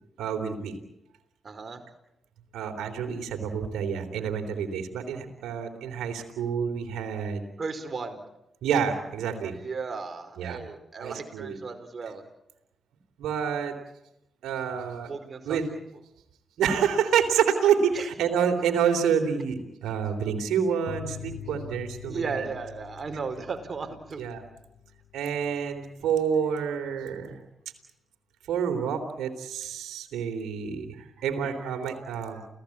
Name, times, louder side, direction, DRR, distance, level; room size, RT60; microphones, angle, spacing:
voice 1, 0.2-0.7 2.5-7.4 8.6-9.5 10.4-10.6 11.0-11.6 13.2-13.8 14.4-15.1 15.5-15.7 16.6-22.2 24.2-24.4 25.1-27.4 28.5-32.5, right 7 dB, 80° right, 4 dB, 3.5 m, -28 dB
voice 2, 1.4-1.8 7.6-8.2 9.5-12.2 14.9-15.6 17.9-18.1 22.1-24.2, right 4 dB, 50° right, 8 dB, 4.6 m, -35 dB
sound 1, 20.9-26.0, left 10 dB, 70° left, 2.8 m, -44 dB
29.5 x 17.0 x 8.7 m, 0.89 s
hypercardioid pair, 40°, 0 cm